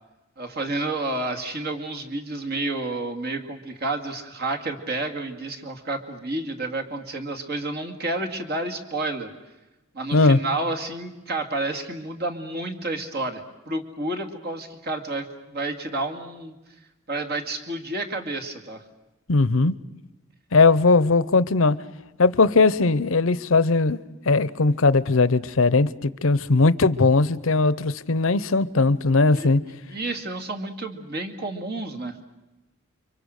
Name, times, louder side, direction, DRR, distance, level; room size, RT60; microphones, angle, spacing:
voice 1, 0.4-9.3 9.9-16.6 17.1-18.8 29.3-29.5 29.9-32.2, right 2 dB, 50° right, 2.2 m, -30 dB
voice 2, 19.3-19.8 20.5-21.8 22.2-24.0 24.3-29.6, left 3 dB, 70° left, 0.8 m, -19 dB
29.5 x 24.5 x 6.5 m
head